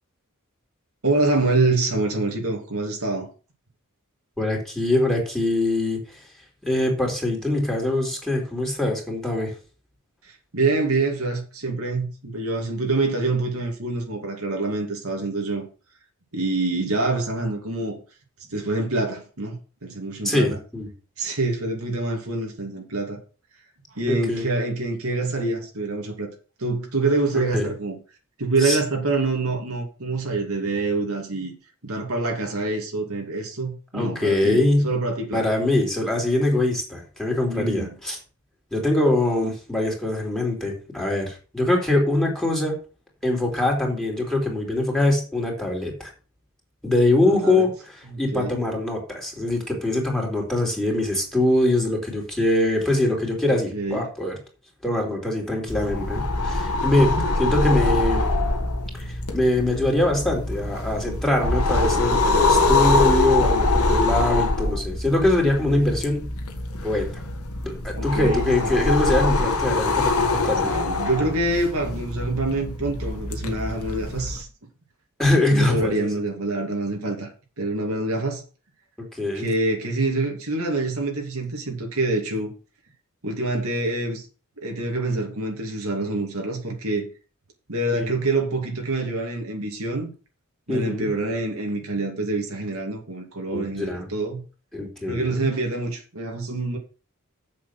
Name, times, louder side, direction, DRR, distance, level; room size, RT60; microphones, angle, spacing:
voice 1, 1.0-3.3 10.2-15.6 16.3-18.0 18.5-20.6 21.2-23.2 23.9-26.3 26.6-28.0 28.4-31.5 31.8-35.4 37.5-37.9 47.2-47.7 48.1-48.6 53.5-54.1 68.0-68.7 70.6-74.5 75.5-77.3 77.6-78.4 79.3-82.5 83.2-84.3 84.6-87.1 87.7-90.1 90.7-94.4 95.1-96.8, right 2 dB, 70° right, 2.5 m, -26 dB
voice 2, 4.4-6.0 6.6-9.5 20.2-20.9 24.1-24.4 27.3-27.7 28.6-28.8 33.9-34.9 35.3-38.2 38.7-42.8 43.2-46.1 46.8-47.7 48.2-54.3 54.8-58.2 58.9-66.3 66.8-67.2 67.6-70.7 75.2-76.1 79.1-79.5 87.9-88.2 90.7-91.1 93.5-94.0 94.7-95.5, left 1 dB, 5° left, 3.3 m, -23 dB
sound 1, 55.7-74.4, left 2 dB, 90° left, 1.7 m, -24 dB
7.7 x 6.9 x 6.0 m
head